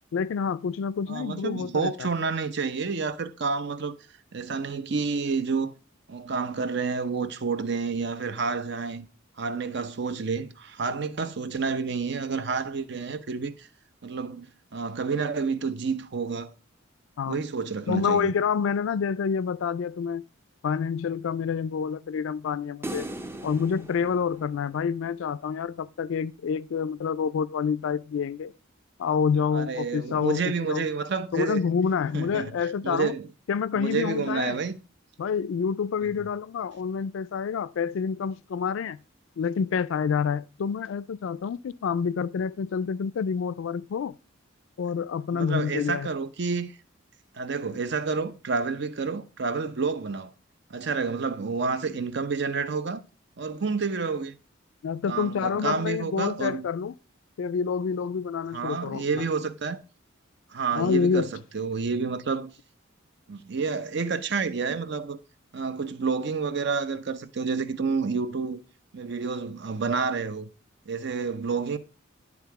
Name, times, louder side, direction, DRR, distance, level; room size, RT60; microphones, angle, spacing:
voice 1, 0.1-2.1 17.2-17.4 17.9-20.2 20.6-23.1 23.4-28.5 29.0-30.8 31.3-33.1 33.5-34.6 35.2-39.0 39.4-44.1 44.8-46.1 54.8-56.9 57.4-59.2 60.7-61.3, left 6 dB, 70° left, 0.3 m, -28 dB
voice 2, 1.1-4.0 4.3-5.7 6.1-9.1 9.4-13.7 14.0-16.5 17.3-18.3 29.5-31.6 32.1-32.5 32.8-33.3 33.7-34.8 45.3-46.7 47.3-50.3 50.7-53.0 53.4-54.4 55.1-56.7 58.5-59.8 60.5-62.5 63.3-65.2 65.5-68.6 68.9-70.5 70.9-71.8, right 4 dB, 55° right, 0.6 m, -29 dB
sound 1, 22.8-25.2, right 1 dB, 10° right, 0.4 m, -39 dB
10.5 x 3.6 x 4.7 m
head